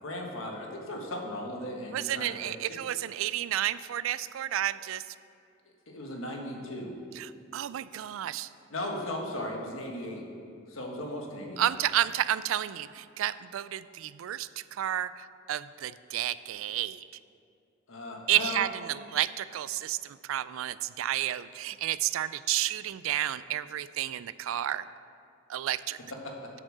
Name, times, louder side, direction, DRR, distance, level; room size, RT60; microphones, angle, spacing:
voice 1, 0.0-2.8 5.9-6.9 8.7-10.2 10.7-11.8 17.9-18.6 26.2-26.3, left 1 dB, 85° left, 1 dB, 1.5 m, -37 dB
voice 2, 1.9-5.0 7.2-8.5 11.6-17.0 18.3-24.9 25.5-26.0, right 12 dB, 80° right, 16 dB, 0.3 m, -31 dB
8.0 x 7.3 x 6.3 m, 2.4 s
head